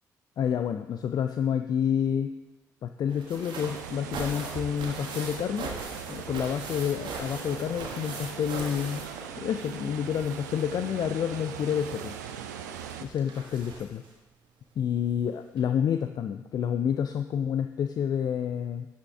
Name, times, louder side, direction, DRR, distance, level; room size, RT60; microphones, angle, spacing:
voice 1, 0.4-2.3 2.8-5.7 6.1-9.1 9.4-12.1 13.0-14.0 14.8-18.9, left 8 dB, 45° left, 8 dB, 0.4 m, -29 dB
sound 1, 3.1-9.8 10.1-14.1 15.1-15.2 15.6-15.7, right 3 dB, 55° right, 1.4 m, -41 dB
sound 2, 3.5-13.0, right 9 dB, 75° right, 0.4 m, -40 dB
11.0 x 5.7 x 3.4 m, 1.2 s
figure-of-eight pair, 40°, 9 cm